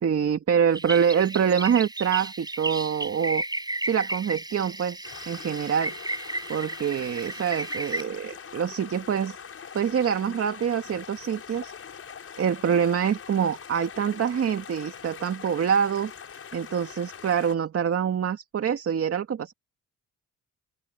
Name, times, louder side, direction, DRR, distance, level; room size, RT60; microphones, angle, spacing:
voice 1, 0.0-3.4 3.8-5.9 6.5-9.4 9.7-11.7 12.4-16.1 16.5-19.5, right 7 dB, 50° right, 2.1 m, -25 dB
sound 1, 0.7-8.0, right 2 dB, 15° right, 5.1 m, -34 dB
sound 2, 5.0-17.5, left 7 dB, 50° left, 5.2 m, -43 dB
open air
cardioid pair, 90°, 30 cm